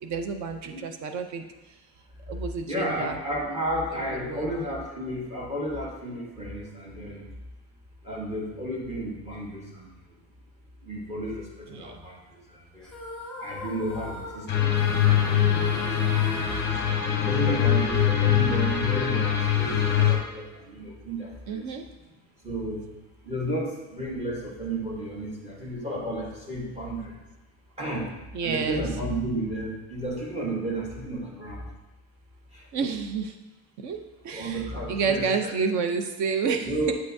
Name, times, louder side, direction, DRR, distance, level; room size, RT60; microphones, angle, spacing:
voice 1, 0.0-1.4 2.3-3.2 4.1-4.6 11.7-12.0 21.5-21.9 28.3-28.8 32.7-33.4 33.8-36.9, right 5 dB, 45° right, 6 dB, 0.6 m, -30 dB
voice 2, 2.7-7.2 8.0-9.9 10.8-12.2 12.5-12.9 13.4-16.8 17.2-21.6 22.4-22.8 23.2-27.1 27.8-28.1 28.4-31.7 32.5-32.7 34.3-35.5 36.6-36.9, right 1 dB, 15° right, -3 dB, 1.2 m, -32 dB
sound 1, 12.8-17.6, equal, ahead, 1.4 m, -40 dB
sound 2, 14.5-20.2, left 9 dB, 25° left, 0.8 m, -23 dB
8.2 x 5.5 x 2.7 m, 1.1 s
cardioid pair, 165°, 39 cm